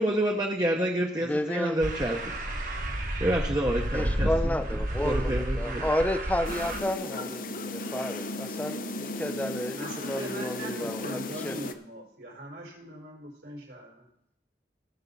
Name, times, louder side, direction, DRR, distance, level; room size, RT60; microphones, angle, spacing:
voice 1, 0.0-2.2 3.2-4.3 5.0-5.9, right 1 dB, 25° right, 0 dB, 0.9 m, -28 dB
voice 2, 1.2-1.8 3.9-11.6, left 1 dB, 10° left, 10 dB, 0.5 m, -31 dB
sound 1, 1.8-6.8, right 1 dB, 50° right, 1.4 m, -31 dB
sound 2, 6.4-11.7, left 2 dB, 50° left, 0.6 m, -35 dB
voice 3, 9.8-14.1, right 1 dB, 85° right, -3 dB, 4.3 m, -41 dB
17.5 x 6.9 x 4.1 m, 0.75 s
head